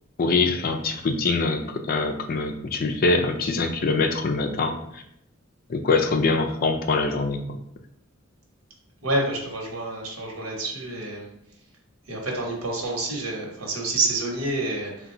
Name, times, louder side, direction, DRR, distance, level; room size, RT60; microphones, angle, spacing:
voice 1, 0.2-5.0 5.7-7.6, left 3 dB, 45° left, 5 dB, 0.4 m, -24 dB
voice 2, 9.0-11.3 12.1-15.1, right 2 dB, 85° right, -1 dB, 1.1 m, -28 dB
3.7 x 2.2 x 4.3 m, 0.76 s
head